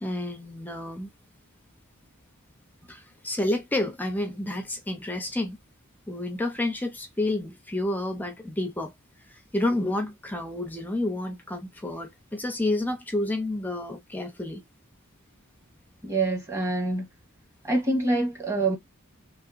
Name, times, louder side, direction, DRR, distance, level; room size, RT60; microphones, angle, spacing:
voice 1, 0.0-1.1 2.9-5.6 6.1-8.9 9.3-14.6, left 1 dB, 10° left, 0.5 m, -30 dB
voice 2, 16.0-17.1 17.6-18.8, right 2 dB, 15° right, 1.2 m, -25 dB
2.9 x 2.8 x 2.4 m
head